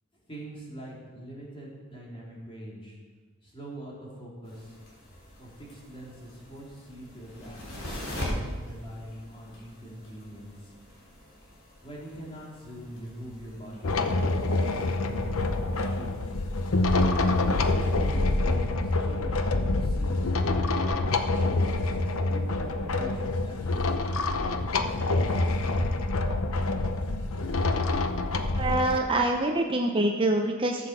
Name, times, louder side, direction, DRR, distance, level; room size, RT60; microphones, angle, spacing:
voice 1, 0.1-3.0 3.4-4.8 5.4-7.6 7.9-10.7 11.8-16.1 17.3-21.5 22.3-25.7, right 1 dB, 25° left, -4 dB, 3.6 m, -43 dB
sound 1, 4.4-18.1, equal, 60° left, 3.8 m, -42 dB
sound 2, 13.8-29.0, left 2 dB, 75° left, 0.8 m, -26 dB
voice 2, 28.5-30.9, right 1 dB, 25° right, 2 dB, 0.7 m, -25 dB
14.0 x 8.0 x 6.8 m, 1.4 s
head